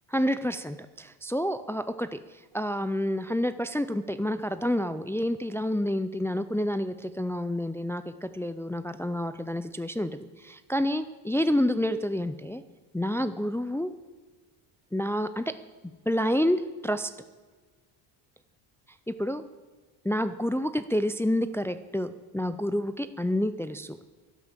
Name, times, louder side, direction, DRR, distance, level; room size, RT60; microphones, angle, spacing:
voice 1, 0.1-2.2 2.5-12.6 12.9-13.9 14.9-15.4 16.1-17.1 19.1-19.4 20.0-24.0, left 1 dB, 5° left, 11 dB, 0.4 m, -28 dB
12.0 x 11.0 x 7.3 m, 1.4 s
cardioid pair, 120°, 50 cm